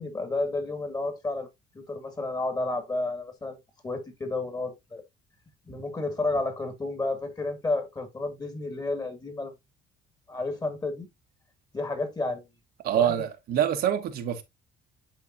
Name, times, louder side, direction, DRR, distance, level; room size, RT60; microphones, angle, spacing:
voice 1, 0.0-1.5 1.7-3.6 3.8-5.0 5.7-9.5 10.3-11.1 11.7-12.5 12.9-13.1, left 2 dB, 20° left, 2.1 m, -31 dB
voice 2, 12.8-14.4, right 10 dB, 65° right, 1.2 m, -25 dB
10.0 x 3.9 x 2.6 m
cardioid pair, 110°, 17 cm